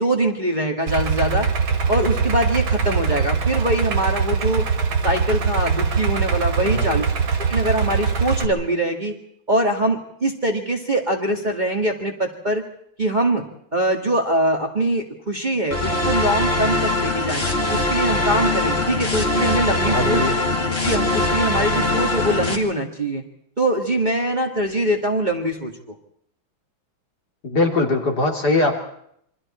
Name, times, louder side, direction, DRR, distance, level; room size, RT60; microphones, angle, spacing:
voice 1, 0.0-1.5 1.9-4.6 5.0-7.0 7.3-9.1 9.5-12.6 13.0-13.4 13.7-17.4 17.7-20.2 20.8-23.2 23.6-25.7, right 1 dB, 25° right, 2 dB, 2.1 m, -23 dB
Idling, 0.9-8.4, right 5 dB, 85° right, 2.7 m, -22 dB
voice 2, 6.6-7.1 19.9-20.4 27.4-28.7, left 2 dB, 50° left, 2 dB, 3.6 m, -21 dB
sound 1, 15.7-22.6, left 2 dB, 30° left, 2.6 m, -22 dB
28.0 x 24.5 x 4.4 m, 0.70 s
omnidirectional pair, 2.2 m